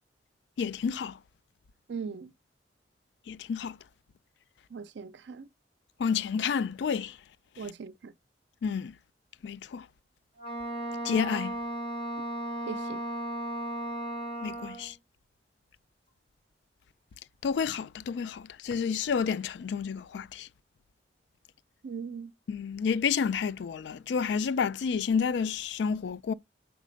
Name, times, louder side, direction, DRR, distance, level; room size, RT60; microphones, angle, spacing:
voice 1, 0.6-1.2 3.3-3.8 6.0-7.2 7.6-7.7 8.6-8.9 9.4-9.9 11.0-11.5 14.4-14.9 17.4-20.5 22.5-26.3, left 6 dB, 70° left, 0.3 m, -30 dB
voice 2, 1.9-2.3 4.7-5.5 7.6-8.1 12.7-13.0 21.8-22.3, right 5 dB, 75° right, 0.4 m, -39 dB
Wind instrument woodwind instrument, 10.4-14.9, right 1 dB, 30° left, 3.6 m, -35 dB
4.6 x 4.1 x 5.1 m
head